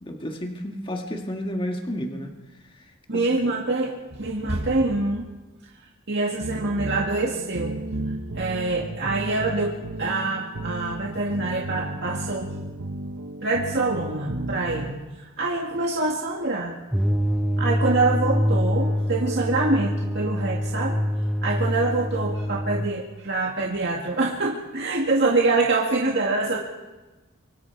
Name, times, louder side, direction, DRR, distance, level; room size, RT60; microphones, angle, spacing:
voice 1, 0.0-2.3 2.7-2.9 3.1-3.3, equal, 25° left, 2 dB, 1.9 m, -31 dB
voice 2, 3.1-5.2 6.1-7.8 8.3-9.7 10.0-12.5 13.4-16.8 17.6-21.0 21.4-26.6, right 3 dB, 55° right, -2 dB, 2.2 m, -25 dB
sound 1, 6.3-14.9, right 1 dB, 75° right, 1.3 m, -33 dB
sound 2, 16.9-22.9, equal, 5° right, 0.7 m, -25 dB
27.0 x 24.0 x 4.8 m, 1.1 s
head